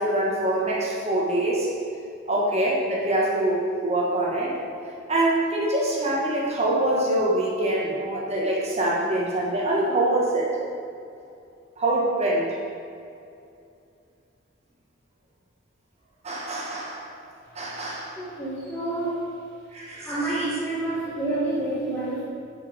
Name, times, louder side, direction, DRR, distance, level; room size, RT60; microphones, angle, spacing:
voice 1, 0.0-1.7 2.3-4.6 5.1-10.5 11.8-12.5 16.2-17.1 17.5-18.2 19.7-20.5, right 1 dB, 35° right, -4 dB, 1.4 m, -24 dB
voice 2, 18.2-19.2 20.0-22.2, right 2 dB, 10° left, -11 dB, 1.6 m, -28 dB
9.8 x 5.7 x 5.2 m, 2.5 s
head